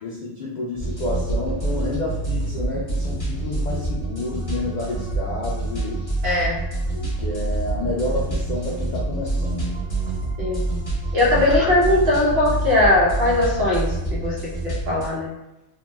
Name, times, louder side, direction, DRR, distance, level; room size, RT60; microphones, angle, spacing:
voice 1, 0.0-6.0 6.9-9.8, left 2 dB, 80° left, -3 dB, 0.4 m, -29 dB
sound 1, 0.8-15.1, right 2 dB, 30° left, 0.9 m, -27 dB
voice 2, 6.2-6.6 10.4-10.6 11.1-14.4 14.6-15.3, left 2 dB, 55° right, -5 dB, 1.1 m, -20 dB
2.7 x 2.0 x 3.2 m, 0.94 s
omnidirectional pair, 1.3 m